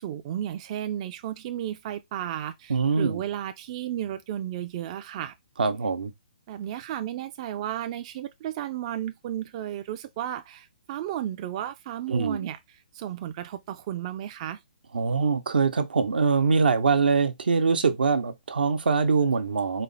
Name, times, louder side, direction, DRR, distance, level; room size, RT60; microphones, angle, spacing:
voice 1, 0.0-5.3 6.5-14.6, right 11 dB, 40° right, 0.4 m, -33 dB
voice 2, 2.7-3.2 5.6-6.1 12.1-12.5 14.9-19.8, right 5 dB, 80° right, 0.8 m, -23 dB
4.2 x 2.1 x 3.9 m
hypercardioid pair, 145°, 5 cm